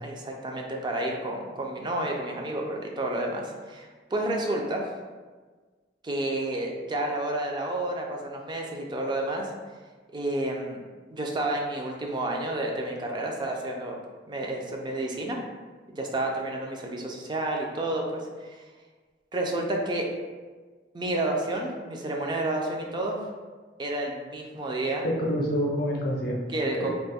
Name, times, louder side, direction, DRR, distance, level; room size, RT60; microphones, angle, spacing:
voice 1, 0.0-4.8 6.0-9.5 10.1-14.0 14.3-15.4 15.9-18.6 19.3-20.1 20.9-23.2 23.8-25.0 26.5-26.9, right 1 dB, 25° right, 0 dB, 0.4 m, -30 dB
voice 2, 25.0-26.9, equal, 55° left, -1 dB, 0.6 m, -28 dB
2.5 x 2.3 x 4.1 m, 1.4 s
head